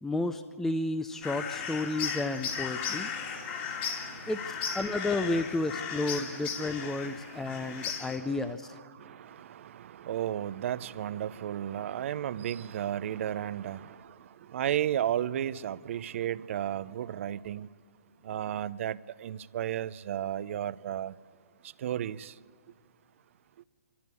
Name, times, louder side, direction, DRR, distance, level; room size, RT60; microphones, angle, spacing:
voice 1, 0.0-3.1 4.3-4.4 4.7-8.7, left 2 dB, 5° left, 0.5 m, -32 dB
sound 1, 1.2-8.2, left 7 dB, 45° left, 3.0 m, -36 dB
voice 2, 2.9-5.3 6.0-17.7 18.2-21.2 21.6-22.4, right 10 dB, 55° right, 0.6 m, -35 dB
25.0 x 14.0 x 8.3 m
hypercardioid pair, 140°, 8 cm